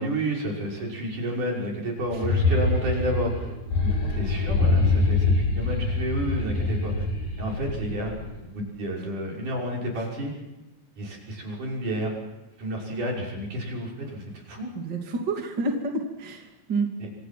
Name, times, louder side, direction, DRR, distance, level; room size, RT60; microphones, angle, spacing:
voice 1, 0.0-3.5 3.8-7.0 7.4-8.1 8.4-10.4 11.0-12.2 12.6-14.7 17.0-17.1, right 1 dB, 65° right, -1 dB, 7.6 m, -30 dB
sound 1, 2.1-8.4, left 3 dB, 80° left, 7.2 m, -25 dB
voice 2, 14.8-16.9, right 3 dB, 30° right, 2 dB, 3.2 m, -29 dB
28.5 x 27.0 x 6.1 m, 1.0 s
omnidirectional pair, 4.0 m